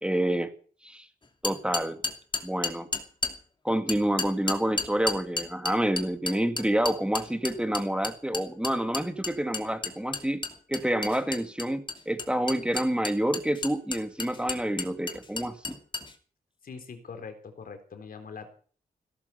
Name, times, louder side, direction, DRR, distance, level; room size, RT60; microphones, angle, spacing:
voice 1, 0.0-0.5 0.8-1.1 1.4-2.0 2.4-2.9 3.6-15.8, right 1 dB, 5° right, 7 dB, 2.0 m, -28 dB
sound 1, 1.4-3.3 3.9-16.1, left 3 dB, 30° left, 2.7 m, -32 dB
voice 2, 16.6-18.5, left 5 dB, 70° left, 7 dB, 3.8 m, -42 dB
17.0 x 14.0 x 5.8 m, 0.44 s
cardioid pair, 85°, 16 cm